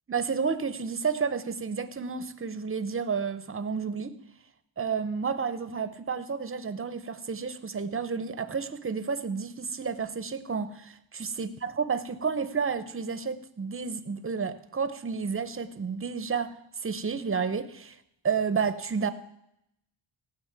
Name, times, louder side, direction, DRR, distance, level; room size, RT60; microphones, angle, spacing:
voice 1, 0.1-4.1 4.8-16.5 16.8-18.0 18.2-19.1, right 5 dB, 25° right, 0.8 m, -31 dB
15.0 x 6.4 x 8.9 m
wide cardioid pair, 130°, 50 cm